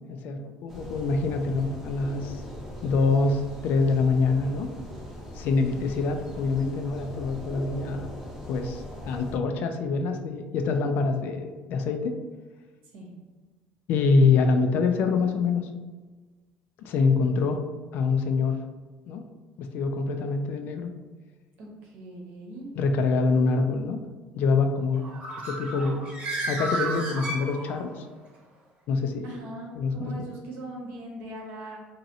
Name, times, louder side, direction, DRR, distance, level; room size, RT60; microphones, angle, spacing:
voice 1, 0.1-2.4 2.8-4.7 5.4-8.1 8.5-12.2 13.9-15.6 16.8-17.6 17.9-18.6 19.1-19.2 19.6-20.9 22.7-24.0 24.3-25.1 25.4-26.1 26.5-28.0 28.9-29.3 29.8-30.1, left 4 dB, 60° left, 6 dB, 0.3 m, -25 dB
sound 1, 0.7-9.4, left 1 dB, 10° right, 0.7 m, -40 dB
voice 2, 21.6-22.7 29.2-31.8, right 1 dB, 65° right, -1 dB, 0.9 m, -40 dB
Bird, 25.0-28.0, right 1 dB, 40° right, 0.9 m, -32 dB
2.9 x 2.7 x 2.6 m, 1.4 s
cardioid pair, 130°, 4 cm